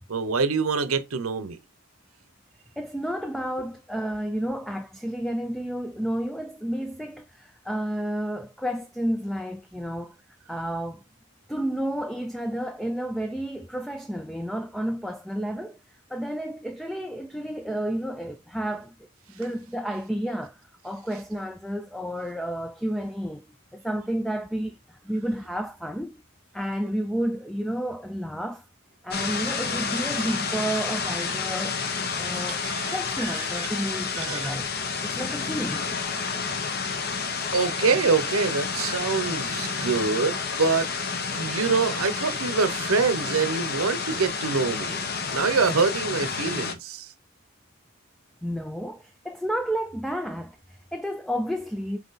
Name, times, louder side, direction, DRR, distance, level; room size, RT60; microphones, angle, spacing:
voice 1, 0.1-1.6 32.3-33.4 34.1-34.6 37.5-40.9 41.3-47.1, right 4 dB, 80° right, 0.8 m, -25 dB
voice 2, 2.8-10.1 10.5-11.0 11.5-15.8 16.1-19.1 19.3-23.4 23.7-26.2 26.5-28.6 29.0-31.8 32.2-32.6 32.9-34.7 35.0-35.9 48.4-52.0, equal, ahead, 0.3 m, -31 dB
sound 1, 29.1-46.7, left 5 dB, 45° left, 0.9 m, -30 dB
8.0 x 2.9 x 4.0 m
head